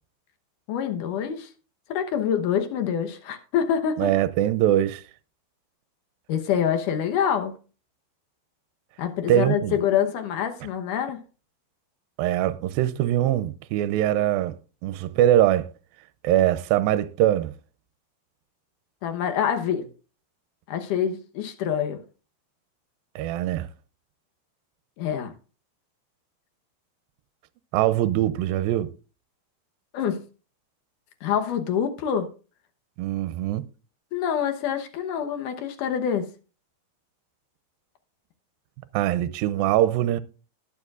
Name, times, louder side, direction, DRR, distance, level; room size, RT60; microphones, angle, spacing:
voice 1, 0.7-1.5 1.9-4.1 6.3-7.5 9.0-11.2 19.0-19.9 20.7-22.0 25.0-25.3 29.9-30.2 31.2-32.3 34.1-36.3, left 8 dB, 70° left, 2.3 m, -26 dB
voice 2, 4.0-5.0 9.3-9.8 12.2-14.6 14.8-15.7 16.2-17.5 23.2-23.7 27.7-28.9 33.0-33.6 38.9-40.2, right 12 dB, 80° right, 2.3 m, -22 dB
19.5 x 7.2 x 2.4 m
omnidirectional pair, 4.4 m